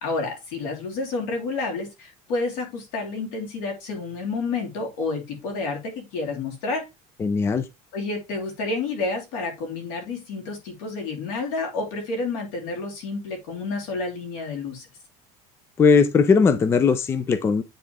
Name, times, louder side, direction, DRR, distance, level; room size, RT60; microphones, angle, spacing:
voice 1, 0.0-6.9 7.9-14.9, left 3 dB, 85° left, 3.2 m, -30 dB
voice 2, 7.2-7.7 15.8-17.6, left 5 dB, 15° left, 0.4 m, -19 dB
9.2 x 3.7 x 3.5 m
cardioid pair, 175°, 17 cm